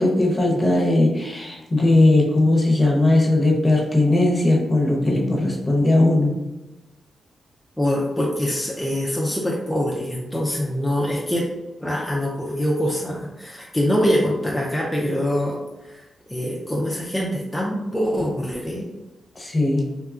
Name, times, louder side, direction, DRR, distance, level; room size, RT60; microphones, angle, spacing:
voice 1, 0.0-6.3 19.4-19.9, left 2 dB, 35° left, -1 dB, 0.8 m, -18 dB
voice 2, 7.8-11.5 11.8-15.6 15.8-18.8, equal, 10° left, -4 dB, 0.5 m, -24 dB
2.8 x 2.3 x 2.4 m, 1.0 s
cardioid pair, 55°, 0 cm